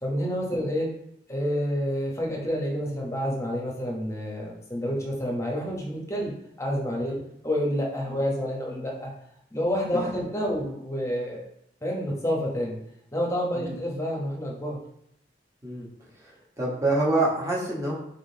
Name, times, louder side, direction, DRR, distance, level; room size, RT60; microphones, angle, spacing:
voice 1, 0.0-0.9 1.3-6.3 6.6-7.1 7.4-9.1 9.5-11.4 11.8-12.8 13.1-14.8, equal, 15° left, -1 dB, 0.8 m, -28 dB
voice 2, 9.9-10.6 13.5-13.7 15.6-15.9 16.2-17.9, right 2 dB, 15° right, -4 dB, 1.0 m, -28 dB
4.1 x 3.7 x 2.7 m, 0.76 s
head